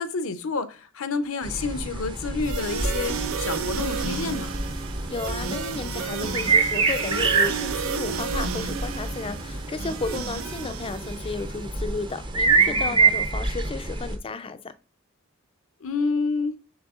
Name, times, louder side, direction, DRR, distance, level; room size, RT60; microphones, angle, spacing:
voice 1, 0.0-4.5 12.6-13.2 15.8-16.6, left 4 dB, 75° left, 0.6 m, -29 dB
sound 1, 1.4-14.2, right 4 dB, 20° right, 0.6 m, -27 dB
sound 2, 2.4-11.6, right 5 dB, 85° right, 0.6 m, -32 dB
voice 2, 5.1-14.7, left 3 dB, 25° left, 0.4 m, -33 dB
6.2 x 3.4 x 2.4 m
head